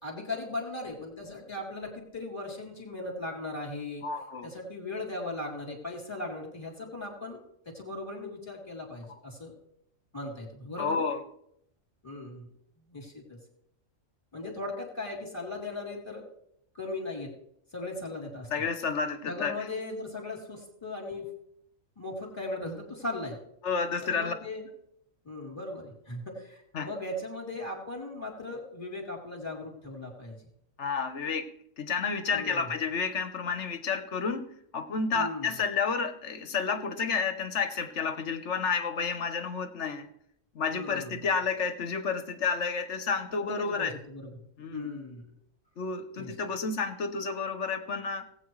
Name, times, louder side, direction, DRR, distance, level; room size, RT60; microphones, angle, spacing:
voice 1, 0.0-4.0 4.4-7.4 7.7-9.5 10.1-11.1 12.0-12.5 12.9-13.4 14.3-16.3 16.7-17.3 17.7-18.5 19.3-21.3 22.0-23.4 24.0-24.7 25.3-30.4 32.3-32.7 35.1-35.5 40.7-41.2 43.3-44.4 44.7-45.3 46.2-46.3, left 2 dB, 20° left, -1 dB, 3.6 m, -38 dB
voice 2, 4.0-4.5 10.8-11.2 18.5-19.5 23.6-24.3 26.7-26.9 30.8-31.5 31.8-34.4 34.7-40.1 40.5-43.9 44.6-44.9 45.8-48.2, left 5 dB, 65° left, 9 dB, 1.3 m, -30 dB
19.0 x 8.6 x 3.2 m, 0.73 s
omnidirectional pair, 1.3 m